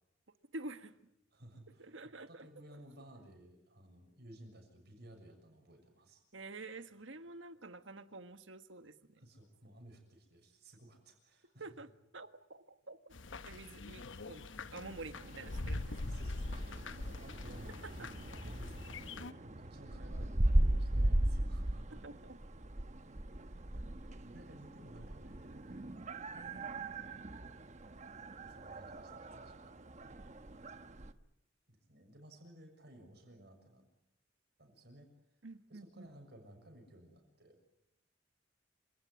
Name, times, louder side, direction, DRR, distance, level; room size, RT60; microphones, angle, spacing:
voice 1, 0.5-0.9 1.8-2.5 2.7-2.8 6.3-9.0 11.6-13.1 13.4-16.0 22.0-22.4 26.3-27.2 35.4-36.1, right 2 dB, 80° right, 9 dB, 1.5 m, -49 dB
voice 2, 1.3-1.9 2.3-6.2 9.2-11.7 16.0-22.0 23.4-25.9 28.5-29.7 31.7-33.8 34.6-35.1 35.7-37.6, right 1 dB, 60° right, 4 dB, 6.7 m, -57 dB
sound 1, 13.1-19.3, left 2 dB, 80° left, 1.0 m, -43 dB
sound 2, 15.2-31.1, right 1 dB, 40° right, 1.1 m, -38 dB
28.0 x 18.0 x 9.6 m, 0.85 s
head